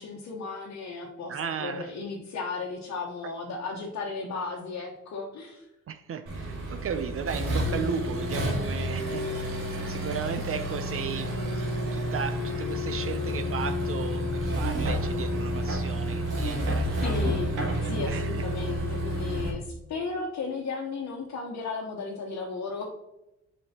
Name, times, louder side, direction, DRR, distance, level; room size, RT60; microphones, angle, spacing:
voice 1, 0.0-5.7 17.0-22.9, left 4 dB, 65° left, -2 dB, 1.1 m, -35 dB
voice 2, 1.3-1.9 5.9-17.1 18.1-18.5, right 7 dB, 50° right, 9 dB, 0.5 m, -35 dB
Accelerating revving vroom, 6.3-19.5, equal, 85° right, 2.3 m, -30 dB
6.8 x 5.2 x 2.9 m, 0.89 s
cardioid pair, 90°, 30 cm